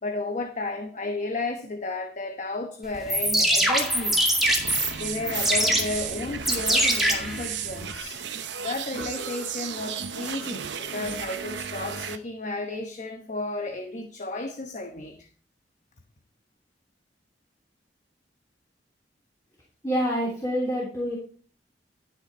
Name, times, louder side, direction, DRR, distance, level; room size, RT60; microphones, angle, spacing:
voice 1, 0.0-4.2 5.0-8.2 8.6-15.3, left 2 dB, 45° left, 1.0 m, -33 dB
sound 1, 2.9-7.9, right 1 dB, ahead, 2.2 m, -24 dB
sound 2, 4.4-12.2, right 7 dB, 90° right, 0.8 m, -34 dB
voice 2, 19.8-21.2, equal, 20° left, 3.0 m, -26 dB
12.5 x 6.1 x 4.3 m
head